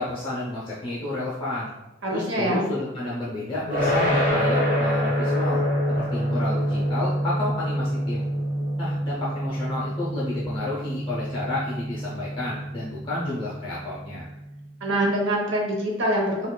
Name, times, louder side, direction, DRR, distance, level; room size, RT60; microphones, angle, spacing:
voice 1, 0.0-1.7 2.1-5.6 5.9-8.3 8.8-14.3, left 2 dB, 25° left, -6 dB, 0.6 m, -31 dB
voice 2, 2.0-2.7 14.8-16.5, right 1 dB, 60° right, -1 dB, 0.9 m, -24 dB
sound 1, 3.7-14.6, equal, 35° right, 1.2 m, -26 dB
5.8 x 2.3 x 2.2 m, 0.97 s
head